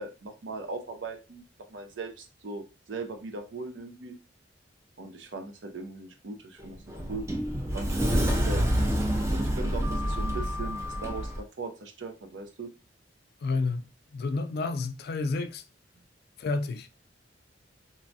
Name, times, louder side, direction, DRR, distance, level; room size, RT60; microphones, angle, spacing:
voice 1, 0.0-1.4 1.7-4.2 5.0-7.3 7.7-8.6 9.3-12.7, right 3 dB, 70° right, 0.6 m, -39 dB
Sliding door, 6.6-11.4, equal, 15° right, 0.4 m, -28 dB
voice 2, 13.4-13.9 14.1-15.6 16.4-16.9, left 3 dB, 55° left, 0.3 m, -30 dB
3.0 x 2.3 x 2.6 m
head